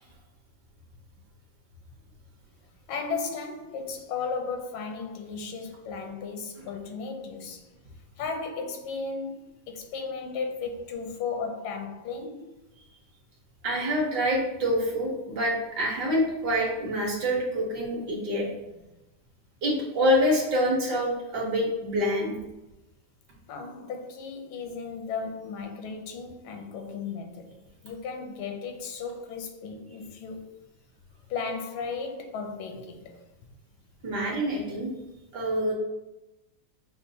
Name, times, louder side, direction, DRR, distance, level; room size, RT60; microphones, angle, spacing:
voice 1, 2.9-7.7 8.2-12.5 23.5-30.5 31.3-33.2, left 5 dB, 85° left, 1.5 m, -35 dB
voice 2, 13.6-18.5 19.6-22.3 34.0-34.9 35.3-35.7, equal, 60° right, 1.3 m, -26 dB
6.6 x 2.3 x 2.7 m
omnidirectional pair, 2.3 m